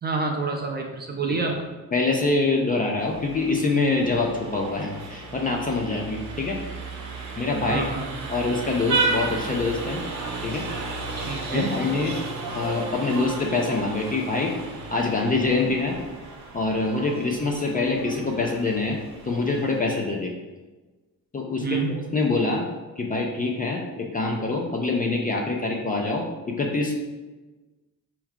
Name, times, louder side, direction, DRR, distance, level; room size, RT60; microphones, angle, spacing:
voice 1, 0.0-1.6 7.7-8.1 11.3-11.7 21.6-21.9, right 4 dB, 25° right, 2 dB, 0.5 m, -27 dB
voice 2, 1.9-6.6 7.4-7.9 8.3-10.0 10.4-10.7 11.5-12.1 12.5-14.5 14.9-16.0 16.5-19.0 19.2-20.3 21.3-21.7 22.1-22.7 23.0-27.0, left 3 dB, 25° left, 1 dB, 0.4 m, -25 dB
Vehicle horn car horn honking, 3.0-19.8, right 3 dB, 50° right, 1.0 m, -33 dB
4.4 x 3.0 x 3.6 m, 1.2 s
cardioid pair, 135°, 37 cm